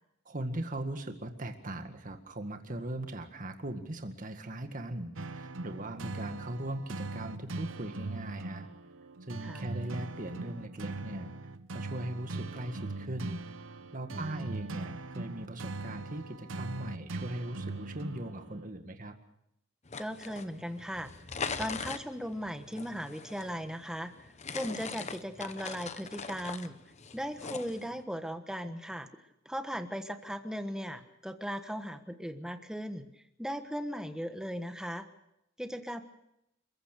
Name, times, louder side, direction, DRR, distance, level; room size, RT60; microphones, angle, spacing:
voice 1, 0.3-8.7 9.2-11.3 11.7-13.4 13.9-19.2, right 1 dB, 40° right, 6 dB, 1.9 m, -39 dB
sound 1, 5.2-18.7, right 3 dB, 65° right, 0.8 m, -40 dB
voice 2, 14.1-14.5 20.0-21.1 21.6-26.8 27.1-29.1 29.4-35.1 35.6-36.0, equal, 5° right, 8 dB, 1.3 m, -38 dB
sound 2, 19.9-28.0, left 5 dB, 35° left, 1.0 m, -42 dB
29.0 x 15.0 x 6.8 m, 0.82 s
head